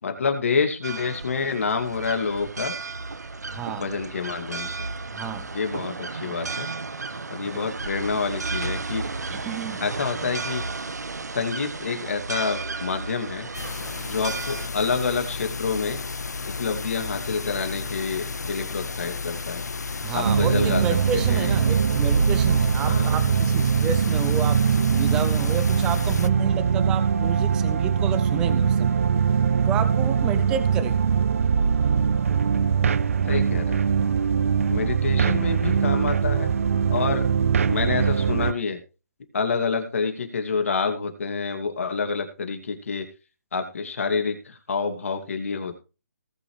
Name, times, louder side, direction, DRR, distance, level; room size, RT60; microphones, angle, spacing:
voice 1, 0.0-2.7 3.8-4.8 5.5-6.7 7.3-9.0 9.8-10.6 11.3-13.5 14.1-16.0 16.4-19.6 20.1-20.8 21.1-21.5 22.8-23.1 33.3-33.9 34.7-36.5 36.9-37.2 37.7-38.8 39.3-43.1 43.5-45.8, left 5 dB, 55° left, 5 dB, 2.5 m, -27 dB
sound 1, 0.8-14.7, right 3 dB, 85° right, 1.3 m, -33 dB
voice 2, 3.5-3.9 5.1-5.5 7.4-7.7 9.2-9.8 20.0-29.0 29.7-31.0, right 8 dB, 10° right, 12 dB, 0.6 m, -31 dB
sound 2, 13.5-26.3, left 4 dB, 90° left, 0.6 m, -33 dB
sound 3, 20.2-38.5, right 7 dB, 55° right, 0.5 m, -22 dB
19.0 x 6.9 x 3.3 m, 0.32 s
hypercardioid pair, 160°, 9 cm